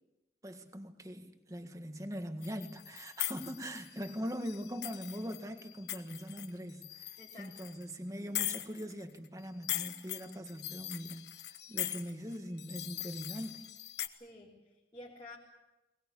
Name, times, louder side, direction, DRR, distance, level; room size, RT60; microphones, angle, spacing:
voice 1, 0.4-13.7, equal, 20° right, 1.7 m, -42 dB
sound 1, 2.4-7.8 8.4-9.3 9.6-14.1, left 13 dB, 70° left, 1.2 m, -41 dB
voice 2, 7.2-7.7 14.1-15.4, left 2 dB, 25° left, 3.6 m, -51 dB
22.5 x 19.5 x 8.5 m
head